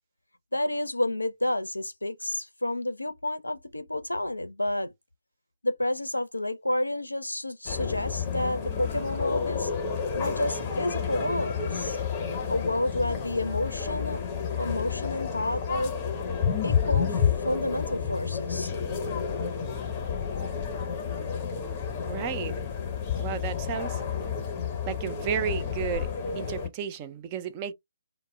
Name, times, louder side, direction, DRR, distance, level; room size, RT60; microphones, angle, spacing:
voice 1, 0.5-4.9 5.6-9.7 10.2-12.0 12.5-14.2 14.6-15.9 16.6-18.7, left 1 dB, 80° left, 0.4 m, -30 dB
sound 1, 7.7-26.7, left 7 dB, 20° left, 0.7 m, -30 dB
voice 2, 22.1-22.6 23.2-24.0 24.8-27.7, right 9 dB, 25° right, 0.3 m, -33 dB
2.0 x 2.0 x 3.3 m
figure-of-eight pair, 140°, 0 cm